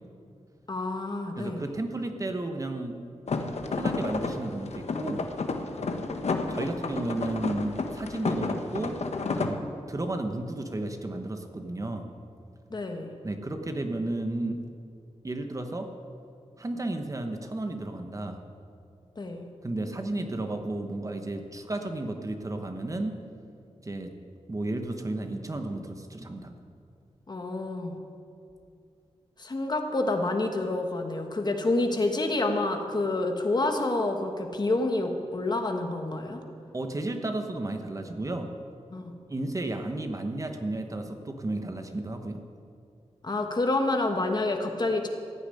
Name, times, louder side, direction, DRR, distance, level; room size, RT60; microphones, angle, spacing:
voice 1, 0.7-1.6 12.7-13.1 19.2-19.5 27.3-27.9 29.4-36.4 38.9-39.1 43.2-45.1, left 2 dB, 40° left, 4 dB, 1.4 m, -28 dB
voice 2, 1.4-3.0 3.7-5.3 6.5-9.0 9.3-9.6 9.9-12.1 13.2-14.6 15.2-15.9 16.6-18.4 19.6-23.1 23.8-24.1 24.5-26.5 36.7-38.5 39.3-42.4, right 2 dB, 30° right, 5 dB, 1.0 m, -33 dB
sound 1, 3.3-9.5, left 3 dB, 75° left, 1.1 m, -31 dB
15.0 x 7.1 x 9.9 m, 2.5 s
wide cardioid pair, 135°, 11 cm